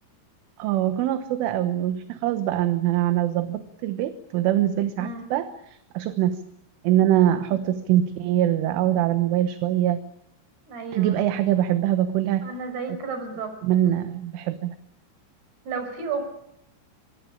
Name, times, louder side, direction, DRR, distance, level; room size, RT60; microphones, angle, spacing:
voice 1, 0.6-6.4 6.8-10.0 10.9-12.5 12.9-13.0 13.6-14.8, right 12 dB, 75° right, 9 dB, 3.5 m, -23 dB
voice 2, 5.0-5.3 7.5-7.6 10.7-11.2 12.4-13.5 15.7-16.2, right 4 dB, 50° right, 8 dB, 7.0 m, -32 dB
24.5 x 23.0 x 8.6 m, 0.78 s
omnidirectional pair, 5.8 m